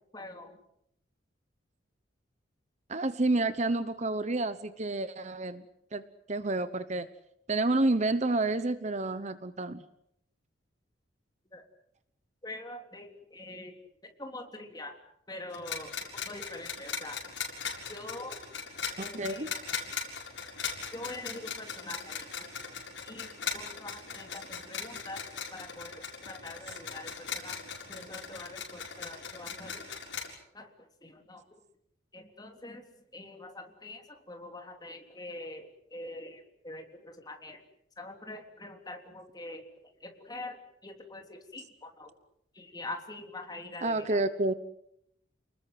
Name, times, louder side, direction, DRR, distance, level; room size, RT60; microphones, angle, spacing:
voice 1, 0.1-0.5 11.5-11.6 12.4-13.1 13.3-13.7 14.2-14.9 15.3-15.9 16.3-17.2 17.9-18.4 19.0-19.5 20.9-22.4 23.1-25.2 25.5-27.5 27.9-29.8 30.5-30.7 31.0-31.4 32.1-32.8 33.1-34.0 34.3-36.4 36.6-37.6 38.0-39.6 40.0-40.6 40.8-42.1 42.6-44.0, left 2 dB, 20° left, 4 dB, 3.4 m, -44 dB
voice 2, 2.9-5.6 5.9-7.1 7.5-9.8 19.0-19.5 43.8-44.5, right 2 dB, 35° right, 12 dB, 1.0 m, -29 dB
sound 1, 15.5-30.3, left 6 dB, 70° left, 6.9 m, -39 dB
30.0 x 20.5 x 8.0 m, 0.76 s
head